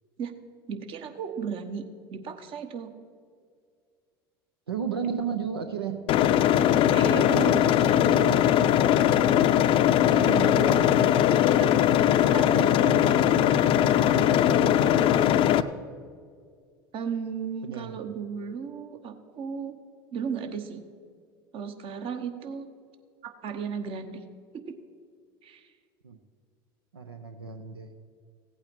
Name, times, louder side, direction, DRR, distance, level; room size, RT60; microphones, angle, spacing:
voice 1, 0.7-1.8 2.1-3.0 6.9-8.2 10.0-10.3 11.5-11.8 12.2-12.7 16.9-19.8 20.1-20.8 21.5-22.7 23.2-24.2 24.5-24.8 25.4-25.6, right 6 dB, 45° right, 8 dB, 1.1 m, -35 dB
voice 2, 4.7-6.0 8.1-8.5 10.1-10.9 12.5-15.4 17.6-18.0 26.0-26.2 26.9-27.9, right 6 dB, 90° right, 7 dB, 0.6 m, -34 dB
sound 1, 6.1-15.6, left 11 dB, 45° left, 0.5 m, -20 dB
16.0 x 8.6 x 4.5 m, 2.1 s
hypercardioid pair, 75°, 12 cm